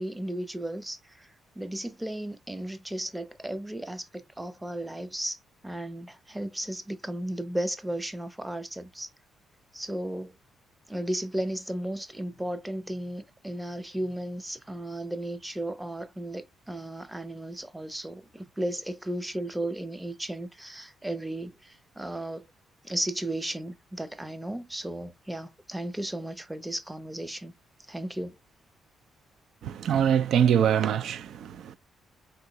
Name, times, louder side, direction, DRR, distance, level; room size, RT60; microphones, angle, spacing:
voice 1, 0.0-5.4 5.6-9.1 9.7-10.3 10.9-22.5 22.8-27.5 27.9-28.4, right 1 dB, 10° right, 0.6 m, -35 dB
voice 2, 29.6-31.8, right 8 dB, 70° right, 0.4 m, -24 dB
3.7 x 2.7 x 2.9 m
cardioid pair, 90°, 0 cm